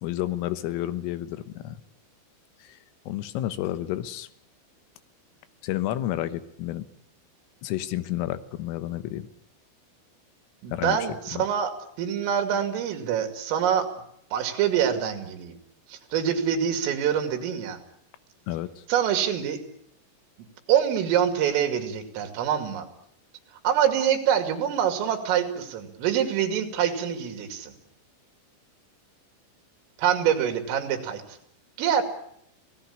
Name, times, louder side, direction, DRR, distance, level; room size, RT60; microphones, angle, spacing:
voice 1, 0.0-1.8 2.6-2.8 3.1-4.3 5.6-6.9 7.6-9.3 10.7-11.0 11.3-11.4 18.5-18.8, left 14 dB, 85° left, 12 dB, 3.7 m, -30 dB
voice 2, 10.6-11.7 12.0-13.9 14.3-15.6 15.9-17.8 18.9-19.6 20.7-22.9 23.6-27.7 30.0-31.2 31.8-32.0, right 9 dB, 80° right, 6 dB, 5.0 m, -25 dB
26.5 x 18.0 x 8.3 m, 0.71 s
omnidirectional pair, 5.8 m